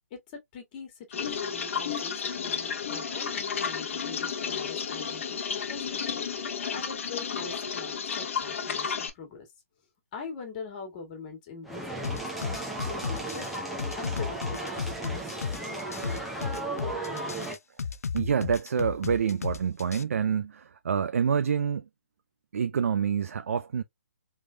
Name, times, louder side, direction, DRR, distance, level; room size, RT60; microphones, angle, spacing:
voice 1, 0.1-9.5 10.1-13.4 14.0-16.1, left 4 dB, 30° left, 1.7 m, -43 dB
sound 1, 1.1-9.1, left 6 dB, 60° left, 0.8 m, -32 dB
sound 2, 11.6-17.6, right 2 dB, ahead, 0.7 m, -35 dB
sound 3, 12.0-20.0, left 5 dB, 85° left, 0.4 m, -34 dB
voice 2, 18.1-21.9 22.5-23.8, right 7 dB, 70° right, 0.4 m, -27 dB
3.5 x 3.1 x 2.2 m
hypercardioid pair, 150°, 8 cm